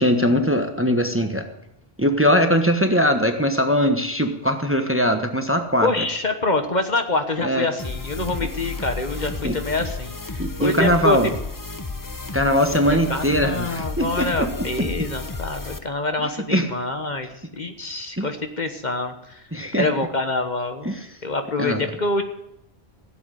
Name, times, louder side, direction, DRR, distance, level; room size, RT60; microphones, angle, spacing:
voice 1, 0.0-1.5 2.0-6.1 7.4-7.7 8.4-8.5 9.4-9.5 10.4-11.3 12.3-14.9 16.2-16.7 18.2-18.3 19.5-19.9 20.8-20.9 21.6-21.9, equal, 10° right, 6 dB, 1.2 m, -21 dB
voice 2, 5.8-11.2 12.7-12.8 13.1-19.4 19.8-20.9 21.2-22.2, left 2 dB, 45° left, 6 dB, 1.4 m, -26 dB
sound 1, 7.8-15.8, left 3 dB, 20° left, 0.9 m, -32 dB
16.5 x 8.0 x 9.1 m, 0.78 s
omnidirectional pair, 1.1 m